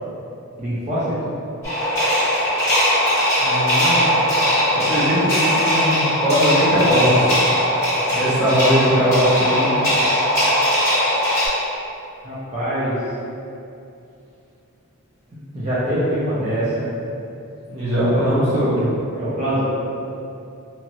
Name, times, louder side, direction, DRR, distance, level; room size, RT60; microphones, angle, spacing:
voice 1, 0.6-1.3 12.2-13.0 15.3-16.9 19.1-19.6, right 1 dB, 30° right, -10 dB, 0.5 m, -24 dB
sound 1, 1.6-11.5, equal, 15° left, 1.2 m, -19 dB
voice 2, 3.4-4.3 4.9-7.4 8.1-9.8 17.7-18.9, equal, 75° right, -12 dB, 1.0 m, -20 dB
2.9 x 2.5 x 2.9 m, 2.7 s
head